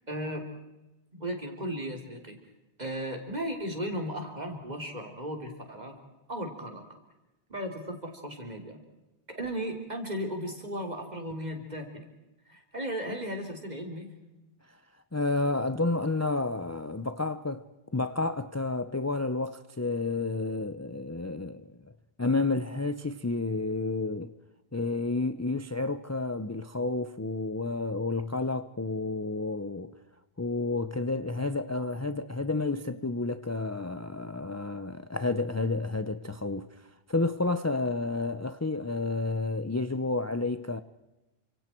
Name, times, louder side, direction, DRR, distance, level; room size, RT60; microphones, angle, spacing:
voice 1, 0.1-0.5 1.1-2.4 2.8-5.9 6.3-6.8 7.5-8.8 9.3-12.1 12.5-14.1, equal, 40° right, 3.7 m, -35 dB
voice 2, 15.1-17.6 17.9-21.7 22.2-24.3 24.7-29.9 30.4-36.7 37.1-40.8, left 3 dB, 20° left, 0.6 m, -30 dB
29.0 x 26.0 x 4.5 m
omnidirectional pair, 1.0 m